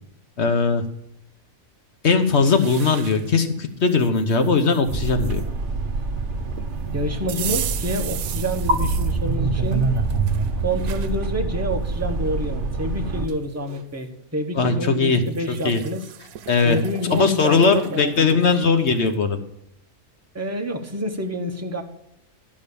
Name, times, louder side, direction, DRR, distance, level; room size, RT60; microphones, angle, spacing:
voice 1, 0.4-0.8 2.0-5.4 14.6-15.8 16.5-16.8 17.1-19.4, left 4 dB, 55° left, 7 dB, 1.1 m, -19 dB
sound 1, 2.2-3.4 3.9-5.4 7.3-9.2 9.7-11.1 11.7-11.8 12.9-13.0 13.3-13.8 15.1-19.2, right 11 dB, 90° right, 1.1 m, -36 dB
sound 2, 4.9-13.3, right 3 dB, 60° right, 1.3 m, -25 dB
voice 2, 6.9-9.9 10.6-16.0 16.6-18.5 20.3-21.8, equal, 10° right, 3 dB, 1.0 m, -28 dB
12.0 x 5.4 x 6.8 m, 0.77 s
omnidirectional pair, 1.4 m